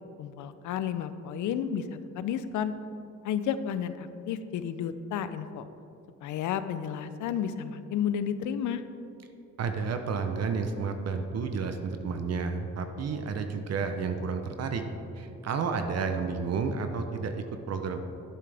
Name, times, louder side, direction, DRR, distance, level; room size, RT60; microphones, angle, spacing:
voice 1, 0.2-2.7 3.2-5.6 6.2-8.8, left 8 dB, 75° left, 12 dB, 0.6 m, -32 dB
voice 2, 9.6-14.8 15.2-18.0, right 5 dB, 55° right, 6 dB, 0.8 m, -31 dB
11.0 x 8.6 x 3.4 m, 2.7 s
cardioid pair, 90°, 30 cm